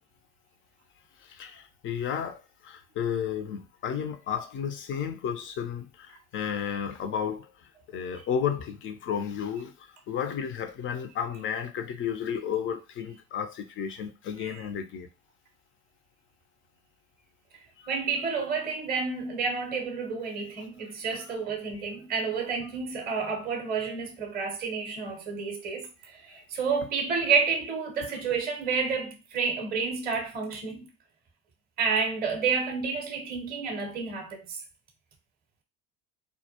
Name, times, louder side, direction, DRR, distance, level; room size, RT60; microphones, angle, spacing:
voice 1, 1.2-15.1 17.8-17.9 20.8-20.9 21.7-21.8 26.3-26.4, left 8 dB, 30° left, 0.4 m, -33 dB
voice 2, 17.9-30.9 31.8-34.6, right 5 dB, 20° right, 0.6 m, -30 dB
2.2 x 2.1 x 2.8 m
hypercardioid pair, 70°, 49 cm